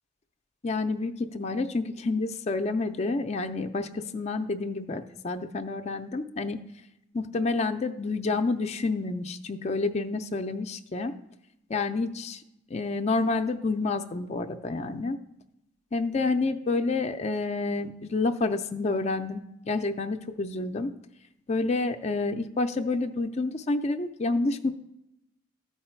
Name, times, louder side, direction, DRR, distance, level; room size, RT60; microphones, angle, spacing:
voice 1, 0.6-6.6 7.1-11.1 11.7-12.4 12.7-15.2 15.9-20.9 21.5-24.7, left 3 dB, 35° left, 7 dB, 0.4 m, -29 dB
13.5 x 4.7 x 4.4 m, 0.86 s
head